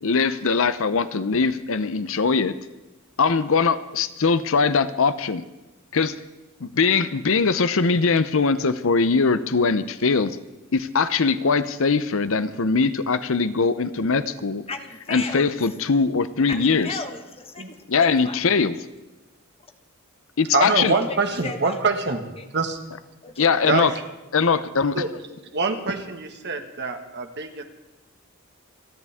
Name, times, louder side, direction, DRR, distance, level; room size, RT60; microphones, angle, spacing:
voice 1, 0.0-2.5 3.2-5.4 5.9-6.1 6.8-10.3 10.7-14.6 15.1-17.0 17.9-18.7 20.4-20.9 23.4-23.9 24.3-25.0, left 4 dB, 65° left, 13 dB, 0.7 m, -21 dB
voice 2, 14.7-15.5 16.5-18.4 20.6-21.9 22.4-22.5 23.2-23.5, left 3 dB, 25° left, 6 dB, 1.4 m, -35 dB
voice 3, 20.5-22.8 23.6-24.0 24.9-25.1 25.5-27.6, right 4 dB, 55° right, 5 dB, 1.7 m, -25 dB
28.5 x 11.0 x 3.6 m, 1.1 s
head